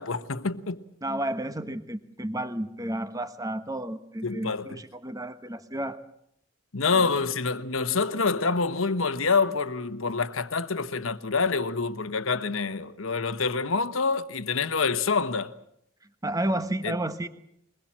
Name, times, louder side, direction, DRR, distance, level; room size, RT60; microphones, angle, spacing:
voice 1, 0.0-0.8 4.2-4.8 6.7-15.5 16.8-16.9, left 4 dB, 80° left, 1.2 m, -27 dB
voice 2, 1.0-6.0 6.9-7.1 16.2-17.3, right 1 dB, 15° right, 1.3 m, -31 dB
23.0 x 21.0 x 7.5 m
head